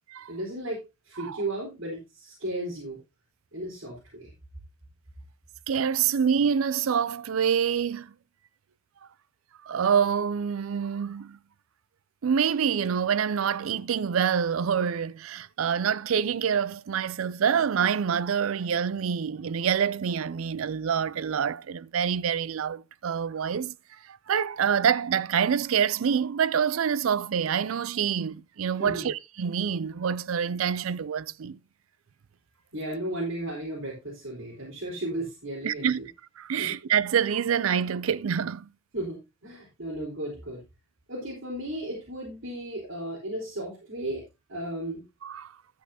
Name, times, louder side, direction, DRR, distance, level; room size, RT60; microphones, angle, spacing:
voice 1, 0.3-3.0 3.5-4.3 28.8-29.1 32.7-36.0 36.6-36.7 38.9-40.6 41.1-44.2 44.5-45.0, right 1 dB, 70° right, 4.0 m, -35 dB
voice 2, 5.7-8.1 9.6-11.4 12.2-23.7 24.1-31.6 35.6-36.0 36.4-38.7 45.2-45.5, right 7 dB, 90° right, 0.4 m, -26 dB
12.0 x 8.3 x 2.8 m
head